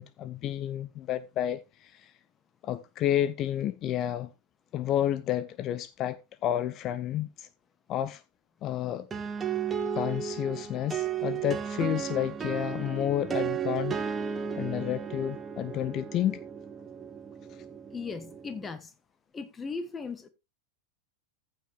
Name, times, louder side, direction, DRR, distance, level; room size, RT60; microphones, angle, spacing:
voice 1, 0.0-2.1 2.6-4.3 4.7-7.5 7.9-8.2 8.6-9.1 9.9-14.0 14.5-16.4, left 11 dB, 35° left, 0.6 m, -30 dB
sound 1, 9.1-18.7, right 7 dB, 20° right, 1.1 m, -34 dB
voice 2, 17.9-18.9 19.3-20.3, left 4 dB, 15° left, 1.4 m, -37 dB
14.5 x 5.4 x 3.5 m
figure-of-eight pair, 90°, 0 cm